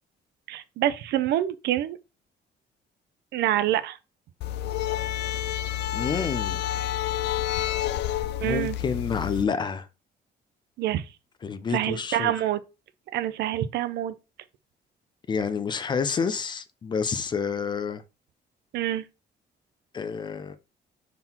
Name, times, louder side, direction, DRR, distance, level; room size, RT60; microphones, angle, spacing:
voice 1, 0.5-2.0 3.3-4.0 8.4-8.8 10.8-11.0 11.7-12.6 13.1-14.1 18.7-19.1, right 12 dB, 75° right, 0.6 m, -26 dB
sound 1, 4.4-9.4, left 12 dB, 80° left, 0.4 m, -29 dB
voice 2, 5.9-6.6 8.4-9.9 11.4-12.3 15.3-18.0 19.9-20.6, left 6 dB, 25° left, 0.5 m, -29 dB
5.8 x 3.8 x 4.3 m
cardioid pair, 175°, 18 cm